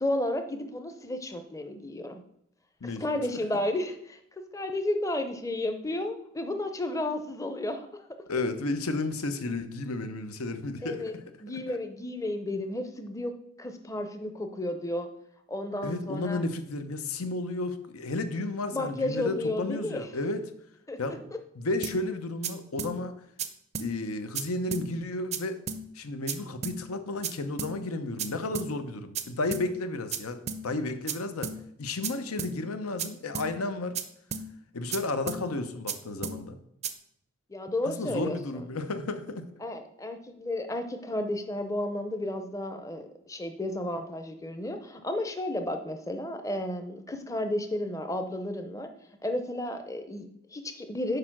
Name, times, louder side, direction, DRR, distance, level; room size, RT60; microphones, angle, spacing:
voice 1, 0.0-2.2 2.8-4.2 4.5-8.1 10.8-11.1 11.4-15.1 15.5-16.4 18.7-20.1 20.9-21.0 37.5-38.6 39.6-48.9 49.2-51.2, left 1 dB, 15° left, 7 dB, 0.6 m, -32 dB
voice 2, 8.3-11.2 11.5-11.8 15.8-20.4 21.0-21.2 21.6-23.1 23.8-25.6 25.9-31.5 31.8-34.0 34.7-36.6 37.8-39.4, left 2 dB, 90° left, 9 dB, 0.8 m, -32 dB
sound 1, 21.8-22.0 22.4-22.5 22.8-22.9 23.4-23.5 23.8-23.9 24.4-24.5 24.7-24.9 25.3-25.4 25.7-25.8 26.3-26.4 26.6-26.8 27.2-27.3 27.6-27.7 28.2-28.3 28.6-28.7 29.2-29.3 29.5-29.7 30.1-30.2 30.5-30.6 31.1-31.2 31.4-31.6 32.0-32.1 32.4-32.5 33.0-33.1 33.4-33.5 34.0-34.1 34.3-34.5 34.9-35.0 35.3-35.4 35.9-36.0 36.2-36.4 36.8-36.9, right 6 dB, 30° right, 0.4 m, -33 dB
6.6 x 4.9 x 6.0 m, 0.74 s
head